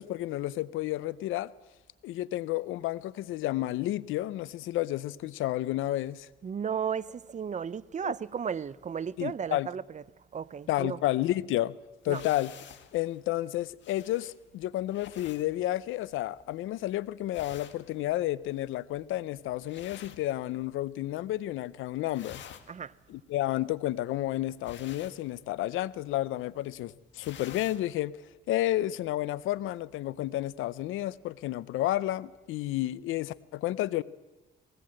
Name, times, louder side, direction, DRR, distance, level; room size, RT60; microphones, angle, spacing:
voice 1, 0.0-1.5 2.0-6.3 8.0-8.1 9.2-9.7 10.7-11.7 12.0-12.5 12.9-22.4 23.1-28.1 28.5-34.0, left 15 dB, 90° left, 0.7 m, -31 dB
voice 2, 6.4-10.0 10.3-11.0 12.1-12.2 22.7-22.9, right 7 dB, 35° right, 0.6 m, -34 dB
sound 1, 12.0-21.0 21.3-21.7 22.0-27.9, left 9 dB, 65° left, 1.7 m, -51 dB
20.0 x 18.0 x 7.7 m
cardioid pair, 90°, 20 cm